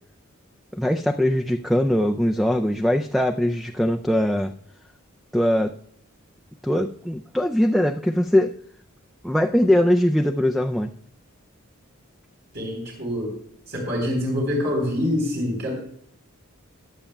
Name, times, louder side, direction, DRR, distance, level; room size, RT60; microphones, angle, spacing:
voice 1, 0.7-4.5 5.3-5.7 6.6-8.5 9.2-10.9, left 1 dB, ahead, 1 dB, 0.3 m, -21 dB
voice 2, 12.5-13.3 13.7-15.7, left 1 dB, 55° right, -2 dB, 3.8 m, -25 dB
15.5 x 10.0 x 2.2 m, 0.64 s
head